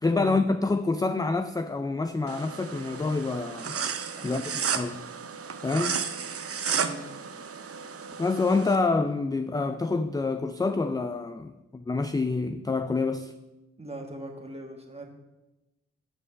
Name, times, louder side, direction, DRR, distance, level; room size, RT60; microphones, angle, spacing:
voice 1, 0.0-3.8 4.2-4.4 4.8-5.1 5.6-6.0 8.2-13.3, left 3 dB, 15° left, 0.4 m, -27 dB
sound 1, 2.3-8.8, right 6 dB, 50° right, 0.7 m, -33 dB
voice 2, 13.8-15.1, right 1 dB, 20° right, 1.6 m, -40 dB
6.8 x 5.2 x 6.2 m
cardioid pair, 55°, 29 cm